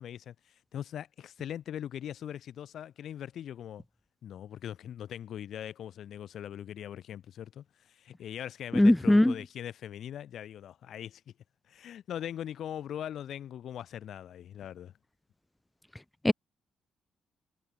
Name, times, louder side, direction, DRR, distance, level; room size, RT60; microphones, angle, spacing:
voice 1, 0.0-3.8 4.2-11.2 11.7-14.9, left 10 dB, 70° left, 6.9 m, -41 dB
voice 2, 8.7-9.3 16.2-16.3, left 1 dB, 10° left, 1.3 m, -20 dB
cardioid pair, 90°, 0 cm